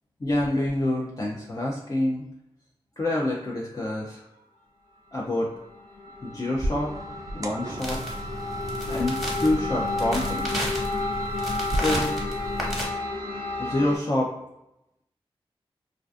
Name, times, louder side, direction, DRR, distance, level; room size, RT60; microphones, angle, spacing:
voice 1, 0.2-2.2 3.0-4.2 5.1-5.5 6.2-6.9 7.3-8.0 8.9-10.5 11.7-12.2 13.6-14.3, left 1 dB, 35° left, -3 dB, 0.5 m, -27 dB
sound 1, 5.4-14.0, left 2 dB, 65° left, 0.8 m, -32 dB
sound 2, 6.5-11.8, right 1 dB, 35° right, 0.3 m, -36 dB
sound 3, 7.8-12.9, equal, ahead, 1.1 m, -33 dB
2.4 x 2.2 x 2.5 m, 0.86 s
cardioid pair, 40°, 10 cm